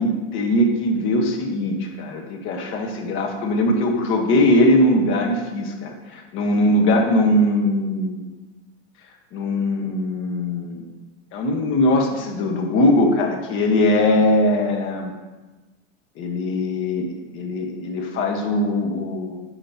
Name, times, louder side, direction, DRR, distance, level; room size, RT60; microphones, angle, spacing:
voice 1, 0.0-8.3 9.3-10.8 11.3-15.1 16.2-19.4, left 1 dB, 40° left, 3 dB, 1.4 m, -21 dB
12.0 x 5.0 x 2.9 m, 1.2 s
supercardioid pair, 135°, 32 cm